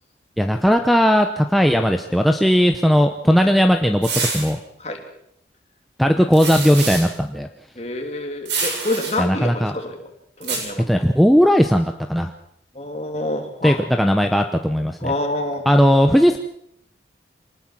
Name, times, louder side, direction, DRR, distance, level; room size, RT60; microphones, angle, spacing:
voice 1, 0.4-4.1 4.3-4.6 6.0-7.5 9.2-9.7 10.9-12.3 13.6-15.1 15.7-16.4, equal, ahead, 4 dB, 0.8 m, -17 dB
sound 1, 4.0-4.5 6.3-7.1 8.4-9.1 10.4-10.6, right 4 dB, 80° right, 7.6 m, -26 dB
voice 2, 7.8-10.0 10.4-10.8 12.7-13.8 15.0-15.7, left 1 dB, 35° left, 3 dB, 3.1 m, -27 dB
24.0 x 19.5 x 6.1 m, 0.73 s
head